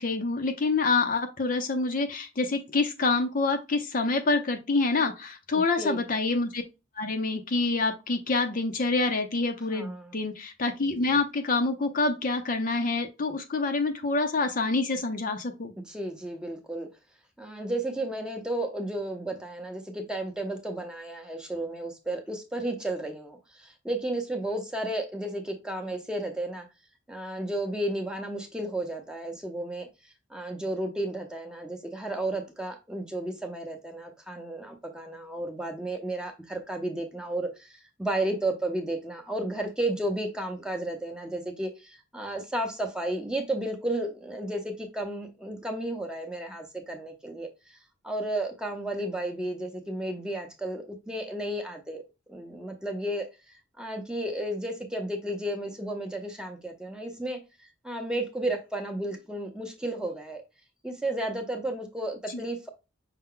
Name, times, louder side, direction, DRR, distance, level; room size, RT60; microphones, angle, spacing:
voice 1, 0.0-6.6 7.0-15.7, left 3 dB, 45° left, 0.6 m, -27 dB
voice 2, 5.5-6.0 9.7-10.1 15.9-16.9 17.4-26.7 27.1-29.9 30.3-47.8 48.0-52.0 52.3-53.3 53.8-57.4 57.8-60.4 60.8-62.7, right 1 dB, 5° right, 0.7 m, -33 dB
5.6 x 2.1 x 3.7 m
head